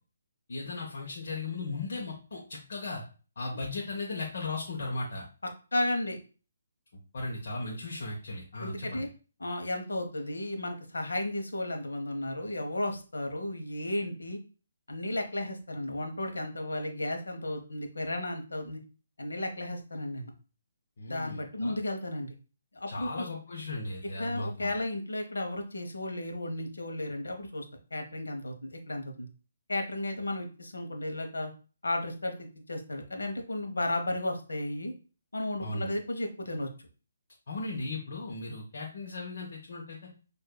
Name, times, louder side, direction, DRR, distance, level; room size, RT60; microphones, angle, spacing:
voice 1, 0.5-2.4 2.7-3.0 3.4-5.3 6.9-9.1 21.0-21.7 22.9-24.7 35.6-35.9 37.5-40.0, left 2 dB, 60° left, -2 dB, 1.0 m, -36 dB
voice 2, 5.7-6.2 8.6-9.1 9.4-14.4 14.9-18.8 19.2-20.3 21.1-22.3 22.7-23.3 24.1-27.6 27.9-29.3 29.7-31.5 31.8-34.9 35.3-36.7, left 1 dB, 85° left, 4 dB, 0.9 m, -34 dB
6.5 x 2.6 x 2.2 m, 0.36 s
figure-of-eight pair, 150°, 0 cm